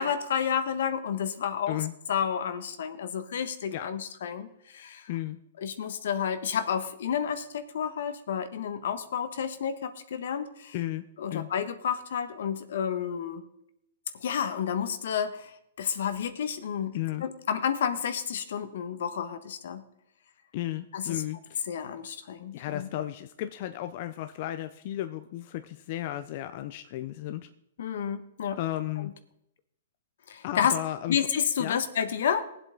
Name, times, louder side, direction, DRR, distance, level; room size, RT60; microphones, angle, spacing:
voice 1, 0.0-1.8 2.1-5.1 5.6-10.7 11.2-13.4 14.1-19.8 20.9-21.2 21.7-22.9 27.8-28.6 29.0-29.1 30.3-30.8 31.1-32.4, left 8 dB, 70° left, 10 dB, 1.3 m, -30 dB
voice 2, 5.1-5.4 10.7-11.1 11.3-11.5 16.9-17.2 20.5-21.6 22.5-27.5 28.6-29.1 30.4-31.2 31.6-31.8, left 14 dB, 45° left, 10 dB, 0.6 m, -34 dB
19.0 x 7.9 x 3.9 m, 0.78 s
hypercardioid pair, 145°, 0 cm